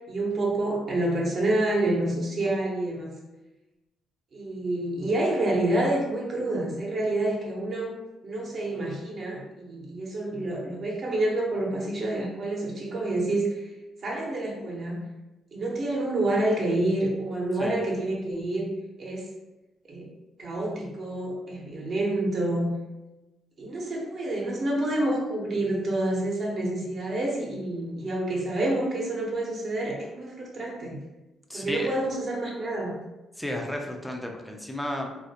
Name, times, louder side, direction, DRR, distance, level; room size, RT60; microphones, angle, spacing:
voice 1, 0.1-3.1 4.3-7.9 8.2-13.6 14.0-15.0 15.5-18.7 19.0-19.3 19.9-20.1 20.4-22.7 23.6-31.0 31.5-33.0, right 1 dB, 50° right, -3 dB, 0.7 m, -28 dB
voice 2, 31.5-31.9 33.4-35.2, left 1 dB, ahead, 1 dB, 0.4 m, -33 dB
2.3 x 2.1 x 2.7 m, 1.0 s
cardioid pair, 90°, 0 cm